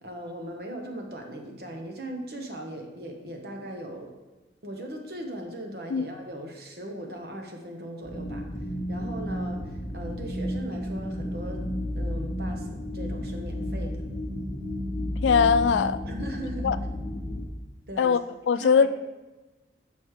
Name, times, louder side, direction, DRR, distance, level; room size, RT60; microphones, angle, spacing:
voice 1, 0.0-4.2 4.6-8.5 8.9-11.7 11.9-14.0 16.0-16.7 17.9-18.2 18.5-18.9, right 1 dB, 60° right, 1.1 m, -38 dB
sound 1, 8.0-17.5, left 1 dB, 35° left, 0.9 m, -32 dB
voice 2, 15.2-16.0 16.6-16.8 18.0-18.2 18.5-18.9, left 6 dB, 90° left, 0.3 m, -20 dB
6.4 x 5.2 x 4.7 m
head